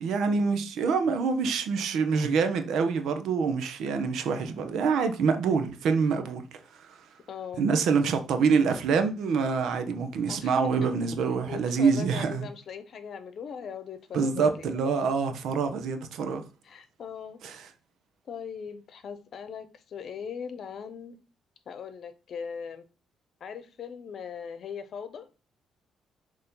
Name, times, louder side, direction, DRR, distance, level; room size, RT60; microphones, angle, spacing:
voice 1, 0.0-7.0 7.6-12.5 14.1-16.4 17.4-17.7, right 5 dB, 75° right, 1.0 m, -26 dB
voice 2, 7.3-7.6 10.3-10.5 11.5-14.7 16.6-17.4 18.3-21.2 21.7-22.8 23.4-25.3, left 7 dB, 60° left, 1.0 m, -39 dB
6.8 x 3.2 x 5.4 m
cardioid pair, 90°, 0 cm